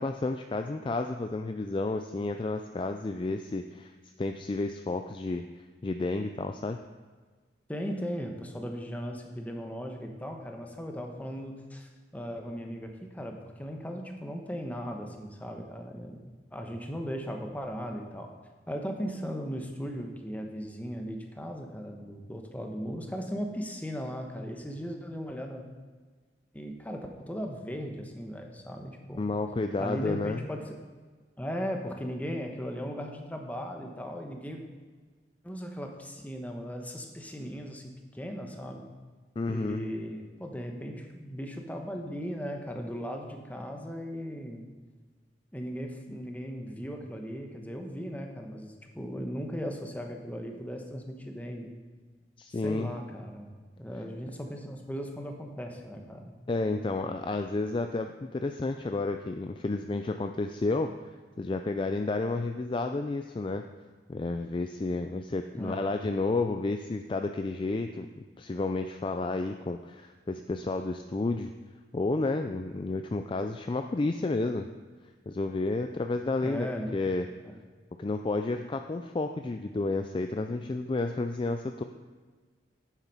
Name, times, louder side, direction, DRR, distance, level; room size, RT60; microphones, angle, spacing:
voice 1, 0.0-3.9 4.2-5.5 5.8-6.8 29.2-30.4 39.4-39.8 52.4-52.9 56.5-60.9 61.4-63.6 64.1-68.1 68.4-71.5 71.9-74.7 75.3-77.3 78.0-81.8, left 3 dB, 30° left, 6 dB, 0.3 m, -31 dB
voice 2, 7.7-18.3 18.7-25.6 26.5-27.0 27.3-29.2 29.8-30.7 31.4-34.6 35.4-37.8 38.1-38.9 39.5-44.7 45.5-51.7 52.5-56.3 65.5-65.9 76.4-76.9 77.4-77.6, equal, 10° left, 3 dB, 1.1 m, -37 dB
9.6 x 7.4 x 5.5 m, 1.4 s
head